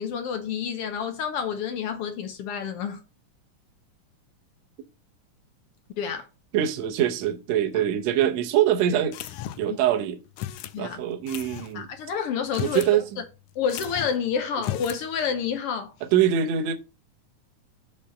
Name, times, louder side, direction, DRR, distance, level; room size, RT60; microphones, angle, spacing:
voice 1, 0.0-3.0 6.0-6.3 9.7-9.8 10.7-11.0 11.7-12.8 13.5-15.9, left 7 dB, 65° left, 1.5 m, -29 dB
voice 2, 6.5-9.3 9.6-10.2 10.8-11.9 12.6-13.0 16.0-16.7, right 10 dB, 70° right, 2.0 m, -23 dB
sound 1, 9.1-9.8 10.4-10.8 11.3-11.7 12.4-13.0 13.2-13.3 13.7-14.2 14.6-15.1, left 12 dB, 90° left, 2.1 m, -35 dB
5.6 x 5.2 x 6.4 m
omnidirectional pair, 3.5 m